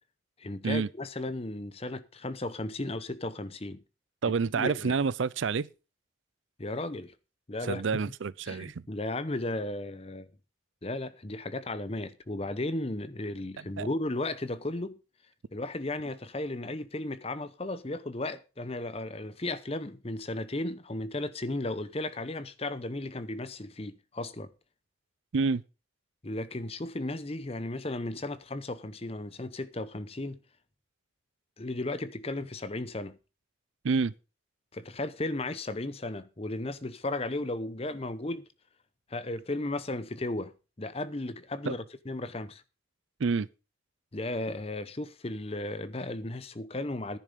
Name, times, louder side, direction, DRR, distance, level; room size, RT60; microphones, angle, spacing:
voice 1, 0.4-3.8 4.3-5.0 6.6-7.2 7.5-7.9 8.4-10.3 10.8-15.0 15.5-24.5 26.2-30.4 31.6-33.2 34.7-38.4 39.1-40.5 40.8-42.6 44.1-47.2, left 2 dB, 30° left, 0.8 m, -35 dB
voice 2, 4.2-5.7 7.6-8.7 13.8-13.9 25.3-25.6 33.8-34.1 41.7-41.8 43.2-43.5, right 5 dB, 70° right, 0.5 m, -28 dB
10.5 x 10.0 x 5.2 m
head